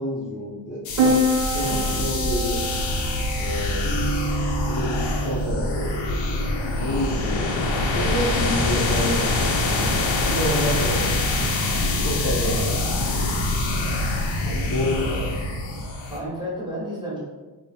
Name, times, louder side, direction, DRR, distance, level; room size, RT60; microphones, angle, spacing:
voice 1, 0.0-2.7 3.4-3.9 4.7-5.9 6.8-7.7 7.9-11.6 12.0-13.4 14.5-15.1, equal, 45° left, -4 dB, 0.6 m, -29 dB
sound 1, 0.8-16.2, left 2 dB, 80° left, 0.7 m, -25 dB
Piano, 1.0-15.9, right 1 dB, 40° right, 0.6 m, -31 dB
voice 2, 1.6-2.0 12.6-12.9 14.4-15.3 16.1-17.2, right 1 dB, 10° right, -7 dB, 1.2 m, -33 dB
sound 2, 2.7-9.5, equal, 25° left, 1.0 m, -31 dB
3.5 x 2.1 x 4.0 m, 1.2 s
wide cardioid pair, 160°, 45 cm